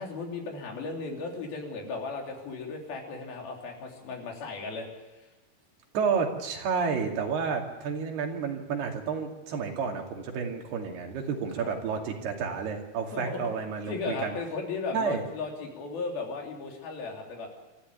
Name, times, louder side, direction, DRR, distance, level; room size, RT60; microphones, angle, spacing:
voice 1, 0.0-4.9 5.1-5.3 11.6-11.7 13.1-13.5 13.9-17.5, left 4 dB, 65° left, 1 dB, 5.2 m, -36 dB
voice 2, 5.9-14.3 14.9-15.3, right 6 dB, 80° right, 2 dB, 4.5 m, -30 dB
24.5 x 14.0 x 9.4 m, 1.2 s
omnidirectional pair, 4.6 m